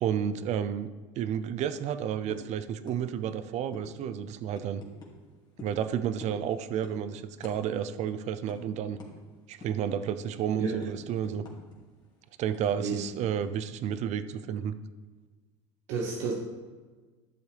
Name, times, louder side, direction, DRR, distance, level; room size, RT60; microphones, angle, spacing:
voice 1, 0.0-0.9 1.2-4.8 5.6-9.0 9.5-11.5 12.4-14.7, right 9 dB, 50° right, 12 dB, 0.6 m, -31 dB
sound 1, 2.3-2.5 2.9-3.0 3.3-3.4 3.7-3.9 4.5-5.1 5.6-5.8 6.2-6.5 6.8-7.0 7.4-7.6 7.9-8.0 8.5-8.6 9.0-9.1 9.6-9.9 10.3-11.8 12.0-12.1 12.5-13.5, left 3 dB, 25° left, 2.4 m, -46 dB
voice 2, 15.9-16.3, right 4 dB, 70° right, -1 dB, 1.2 m, -30 dB
12.0 x 7.0 x 3.4 m, 1.4 s
supercardioid pair, 95°, 15 cm